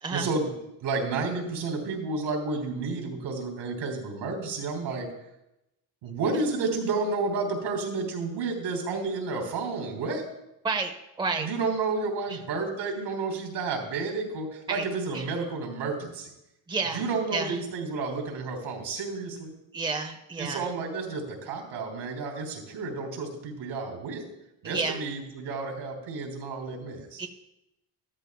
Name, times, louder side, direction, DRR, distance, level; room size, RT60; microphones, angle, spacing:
voice 1, 0.1-0.5 0.8-5.1 6.0-10.2 11.4-16.3 16.9-19.5 20.4-24.2 24.6-27.2, right 3 dB, 85° right, 3 dB, 3.3 m, -31 dB
voice 2, 16.7-17.0 17.3-17.6 19.7-20.7 24.6-25.0 27.2-27.3, right 4 dB, 10° right, 4 dB, 0.8 m, -30 dB
13.5 x 13.5 x 2.3 m, 0.90 s
cardioid pair, 110°, 43 cm